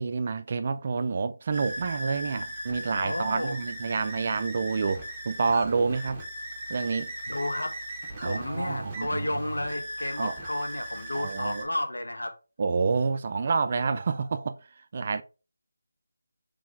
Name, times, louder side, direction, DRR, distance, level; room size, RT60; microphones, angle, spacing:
voice 1, 0.0-6.2 6.7-7.1 8.2-9.3 10.2-10.3 11.1-11.7 12.6-14.6 14.9-15.2, right 4 dB, 40° right, 0.3 m, -28 dB
sound 1, 1.5-11.6, right 1 dB, 15° right, 1.2 m, -38 dB
voice 2, 3.0-3.6 7.3-7.8 8.2-12.3, left 1 dB, 80° left, 1.0 m, -32 dB
3.6 x 3.4 x 3.5 m
figure-of-eight pair, 160°, 0 cm